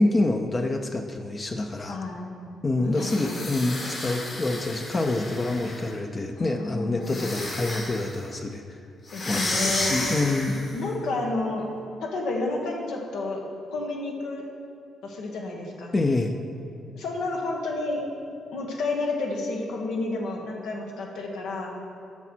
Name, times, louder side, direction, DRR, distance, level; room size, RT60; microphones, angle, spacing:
voice 1, 0.0-2.0 2.6-8.8 9.2-10.7 15.9-16.3, left 2 dB, 30° left, 4 dB, 0.5 m, -26 dB
voice 2, 1.9-2.3 2.8-3.5 6.4-7.4 9.1-9.9 10.7-11.7 12.0-13.4 13.7-14.4 15.0-15.9 16.9-18.0 18.5-21.7, left 2 dB, 90° left, 0 dB, 1.2 m, -31 dB
sound 1, 2.9-5.9 7.0-8.2 9.1-10.8, left 2 dB, 45° left, 1.9 m, -32 dB
8.2 x 5.9 x 4.4 m, 2.6 s
cardioid pair, 100°, 0 cm